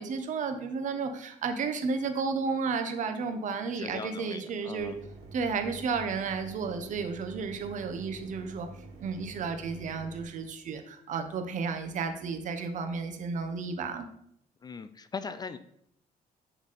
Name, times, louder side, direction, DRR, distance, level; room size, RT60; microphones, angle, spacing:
voice 1, 0.0-4.9 5.3-8.7 9.0-14.1, right 5 dB, 55° right, 7 dB, 0.8 m, -32 dB
voice 2, 3.7-5.0 14.6-15.6, left 5 dB, 25° left, 12 dB, 0.3 m, -40 dB
Mechanisms, 4.8-10.3, right 2 dB, 90° right, 2.1 m, -48 dB
8.5 x 3.4 x 4.1 m, 0.70 s
cardioid pair, 130°, 15 cm